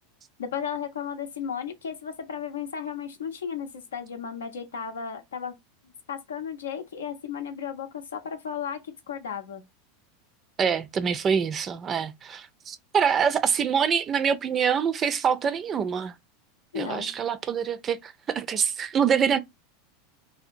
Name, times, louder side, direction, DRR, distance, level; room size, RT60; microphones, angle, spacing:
voice 1, 0.4-5.5 6.1-9.6 16.7-17.1, left 7 dB, 80° left, 0.6 m, -34 dB
voice 2, 10.6-16.1 16.8-19.4, right 7 dB, 30° right, 0.4 m, -25 dB
2.8 x 2.0 x 2.5 m
hypercardioid pair, 90°, 0 cm